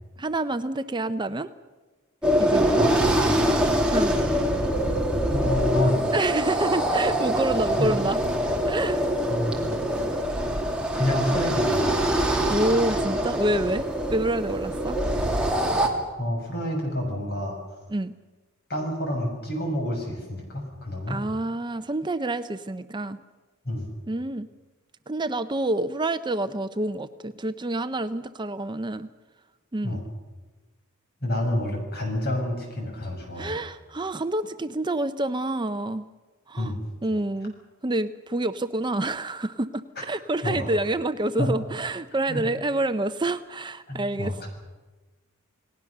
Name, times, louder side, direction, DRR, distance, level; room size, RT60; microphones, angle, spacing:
voice 1, 0.2-1.5 2.4-2.9 3.9-4.1 6.1-8.2 8.7-9.0 12.5-15.0 17.9-18.1 21.1-23.2 24.1-24.5 25.1-29.1 29.7-30.0 33.4-36.0 36.5-36.7 37.0-37.5 37.8-44.4, right 2 dB, 20° right, 10 dB, 0.6 m, -27 dB
sound 1, 2.2-15.9, right 1 dB, 5° right, 2.7 m, -24 dB
voice 2, 2.8-3.6 5.3-6.0 7.8-7.9 9.3-9.5 10.9-12.2 16.2-17.6 18.7-21.2 23.6-23.9 29.8-30.0 31.2-33.6 36.6-36.8 40.0-40.1 40.4-40.7 41.4-41.5 42.3-42.4 43.9-44.5, left 1 dB, 50° left, 2 dB, 6.8 m, -28 dB
29.0 x 18.5 x 6.7 m, 1.2 s
head